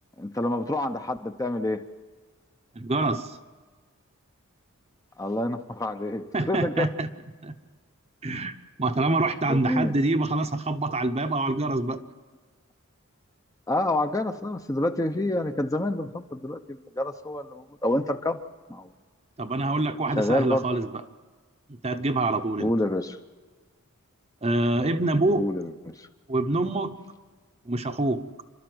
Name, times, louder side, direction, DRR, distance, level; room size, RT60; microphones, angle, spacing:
voice 1, 0.2-1.8 5.2-6.9 9.5-10.0 13.7-18.4 18.7-18.9 20.2-20.7 22.6-23.2 25.4-26.1, left 1 dB, 15° left, 7 dB, 0.7 m, -28 dB
voice 2, 2.7-3.4 6.3-7.1 7.4-7.5 8.2-12.0 19.4-21.0 21.7-22.7 24.4-25.5 26.3-27.0 27.7-28.2, right 2 dB, 30° right, 8 dB, 0.9 m, -26 dB
29.0 x 12.5 x 7.8 m, 1.4 s
head